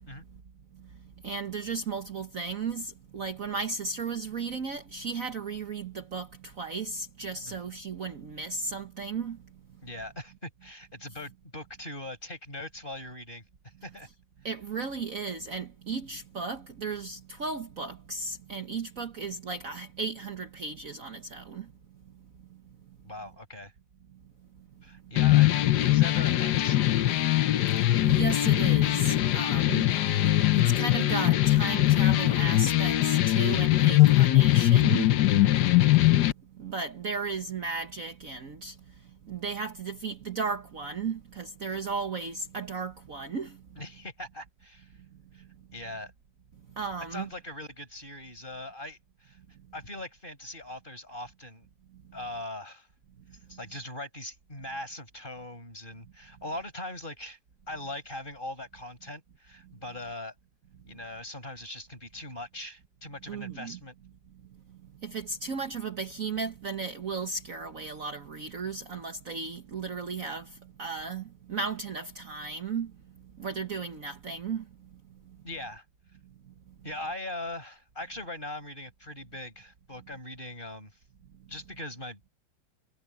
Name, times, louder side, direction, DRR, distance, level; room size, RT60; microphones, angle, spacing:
voice 1, 1.2-9.4 14.4-21.6 28.0-29.9 30.5-35.1 36.6-38.7 39.3-43.6 46.8-47.3 63.3-63.8 65.0-70.5 70.8-72.9 73.4-74.6, right 4 dB, 45° right, 1.6 m, -35 dB
voice 2, 9.8-14.1 23.0-23.7 24.8-27.0 35.3-35.5 43.8-44.9 45.3-45.4 45.7-46.1 47.1-49.4 49.7-51.7 52.1-52.9 53.5-57.4 57.7-60.3 60.9-63.9 75.4-75.8 76.8-81.0 81.5-82.3, left 1 dB, 25° left, 6.4 m, -41 dB
sound 1, 25.2-36.3, left 15 dB, 65° left, 1.3 m, -22 dB
omnidirectional pair, 2.1 m